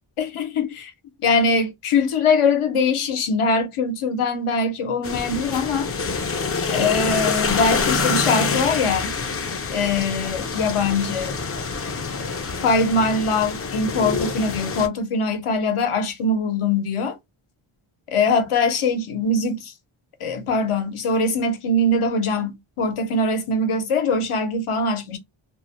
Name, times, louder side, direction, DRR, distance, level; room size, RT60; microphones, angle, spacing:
voice 1, 0.2-0.9 1.2-5.9 6.7-9.1 9.7-11.4 12.2-17.2 18.1-19.7 20.2-25.2, left 3 dB, 80° left, 0.8 m, -22 dB
sound 1, 5.0-14.9, left 4 dB, 30° left, 0.4 m, -26 dB
2.5 x 2.0 x 2.9 m
wide cardioid pair, 80°, 50 cm